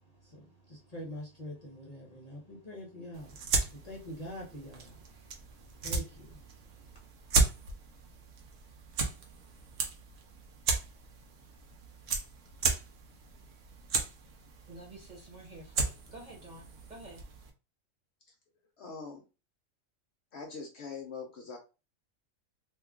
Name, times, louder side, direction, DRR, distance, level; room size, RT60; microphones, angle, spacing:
voice 1, 0.0-7.1, equal, 35° left, 0.9 m, -46 dB
sound 1, 3.1-17.5, right 4 dB, 65° right, 1.0 m, -35 dB
voice 2, 14.7-17.2, right 2 dB, 35° right, 1.2 m, -50 dB
voice 3, 18.8-19.2 20.3-21.6, left 5 dB, 60° left, 0.9 m, -42 dB
3.1 x 2.3 x 3.5 m
omnidirectional pair, 1.4 m